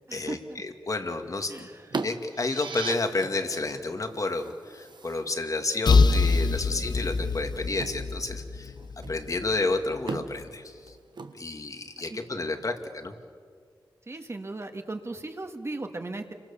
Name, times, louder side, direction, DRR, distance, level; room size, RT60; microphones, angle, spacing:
voice 1, 0.1-0.6 1.5-2.0 12.1-12.2 14.0-16.3, right 2 dB, 35° right, 5 dB, 2.0 m, -37 dB
voice 2, 0.9-1.7 2.0-8.7 9.1-11.0 11.3-13.1, left 3 dB, 40° left, 6 dB, 2.2 m, -30 dB
sound 1, 1.0-12.0, right 4 dB, 65° right, 1.3 m, -42 dB
sound 2, 2.1-3.0, right 5 dB, 85° right, 1.8 m, -37 dB
sound 3, 5.9-9.5, left 4 dB, 60° left, 0.8 m, -24 dB
29.5 x 24.0 x 7.2 m, 2.1 s
wide cardioid pair, 100°, 8 cm